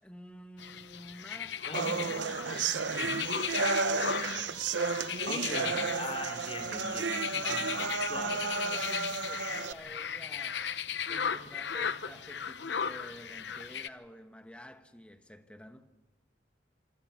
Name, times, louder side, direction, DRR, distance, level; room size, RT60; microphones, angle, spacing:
voice 1, 0.0-4.6 7.2-10.7 11.1-15.9, equal, 5° left, 1.3 m, -50 dB
sound 1, 0.6-13.9, left 7 dB, 65° left, 0.8 m, -37 dB
voice 2, 1.7-2.1 2.5-2.7 5.3-8.4, left 2 dB, 30° left, 3.9 m, -40 dB
sound 2, 1.7-9.7, right 5 dB, 75° right, 0.8 m, -32 dB
26.5 x 26.0 x 6.0 m
head